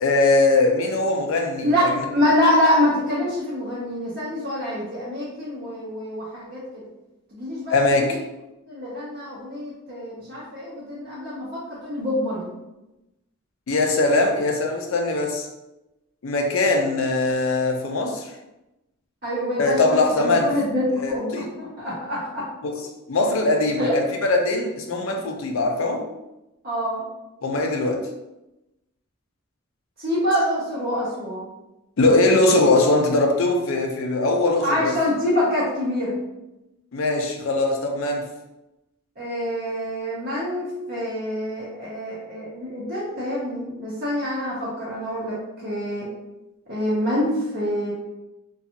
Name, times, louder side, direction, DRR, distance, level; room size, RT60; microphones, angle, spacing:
voice 1, 0.0-2.0 7.7-8.2 13.7-15.5 16.2-18.3 19.6-20.5 21.0-21.5 22.6-22.7 23.1-26.0 27.4-28.1 32.0-34.9 36.9-38.2, left 2 dB, 70° left, 3 dB, 0.5 m, -21 dB
voice 2, 1.6-6.8 7.3-8.2 8.7-12.5 19.2-22.4 23.8-24.0 26.6-27.0 30.0-31.5 34.6-36.1 39.2-45.4 45.6-46.1 46.7-47.9, left 1 dB, 45° right, -8 dB, 0.7 m, -25 dB
2.5 x 2.3 x 2.8 m, 0.95 s
head